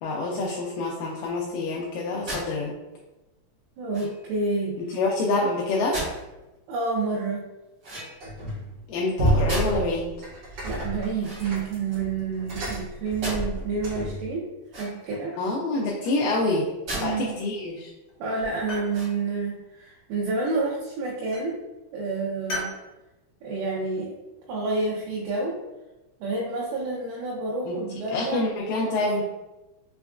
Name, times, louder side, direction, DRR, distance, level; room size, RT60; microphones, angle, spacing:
voice 1, 0.0-2.7 4.8-6.0 8.9-10.2 15.4-16.7 17.0-17.9 27.7-27.8 28.1-29.2, left 2 dB, 85° left, -4 dB, 1.9 m, -26 dB
sound 1, 2.3-2.5 3.9-4.3 5.9-6.2 7.8-8.4 9.5-10.0 11.1-12.0 13.2-13.4 14.6-15.2 16.8-17.1 17.6-17.7 18.8-19.4, right 1 dB, 50° right, 1.2 m, -35 dB
voice 2, 3.8-4.8 6.7-7.5 10.6-14.5 14.8-15.4 16.9-17.4 18.2-21.6 21.9-22.7 23.4-24.2 24.5-25.6 26.2-28.5 28.8-29.1, right 3 dB, 85° right, -4 dB, 2.4 m, -29 dB
sound 2, 8.2-8.7 9.1-14.3, right 1 dB, 65° right, 1.6 m, -29 dB
sound 3, 14.8-15.5 15.9-16.5 17.3-17.8 18.1-19.0 20.4-20.9 21.3-21.5 22.5-22.8, left 1 dB, 60° left, 1.4 m, -38 dB
5.8 x 2.3 x 2.4 m, 1.0 s
omnidirectional pair, 4.3 m